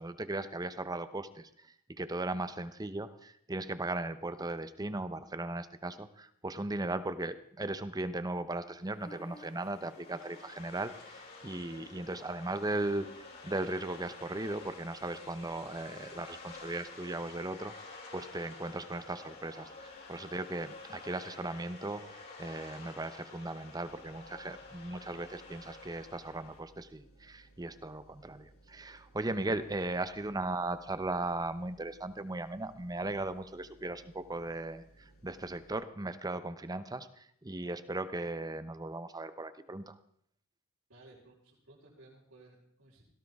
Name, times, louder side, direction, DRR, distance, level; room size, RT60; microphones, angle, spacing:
voice 1, 0.0-1.5 2.0-13.1 13.4-17.7 18.1-22.0 22.4-40.0, right 2 dB, 20° right, 12 dB, 0.8 m, -37 dB
sound 1, 8.7-26.6, left 3 dB, 50° left, 4.0 m, -50 dB
sound 2, 23.8-35.7, right 2 dB, 70° left, 4.9 m, -62 dB
voice 2, 40.9-43.0, right 2 dB, 70° right, -7 dB, 4.6 m, -58 dB
17.5 x 17.0 x 3.6 m, 0.70 s
head